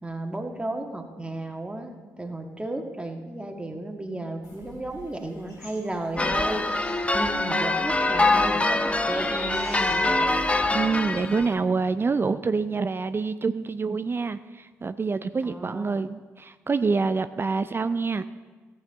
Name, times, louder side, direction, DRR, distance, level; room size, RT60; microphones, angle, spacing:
voice 1, 0.0-6.7 7.1-10.4 15.4-15.9, right 1 dB, 15° right, 3 dB, 1.7 m, -33 dB
sound 1, 4.4-11.5, left 1 dB, 80° left, 2.7 m, -46 dB
sound 2, 6.2-11.5, left 2 dB, 15° left, 0.7 m, -24 dB
voice 2, 10.7-18.2, right 4 dB, 30° right, 12 dB, 0.4 m, -26 dB
15.0 x 8.3 x 3.8 m, 1.4 s
hypercardioid pair, 45°, 7 cm